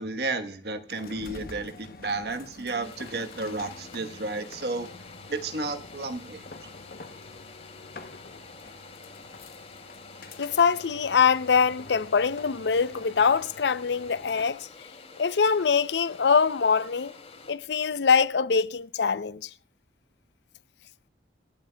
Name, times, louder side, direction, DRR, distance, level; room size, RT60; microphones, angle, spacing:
voice 1, 0.0-4.9 5.3-6.4, right 3 dB, 65° right, 1.2 m, -32 dB
sound 1, 0.9-14.6, left 3 dB, 55° left, 0.9 m, -47 dB
sound 2, 2.8-17.5, left 4 dB, 40° left, 2.7 m, -49 dB
sound 3, 3.6-5.8, equal, 25° right, 1.6 m, -54 dB
voice 2, 10.4-14.7 15.2-17.1 17.5-19.5, left 6 dB, 80° left, 0.6 m, -23 dB
26.5 x 11.0 x 2.3 m
head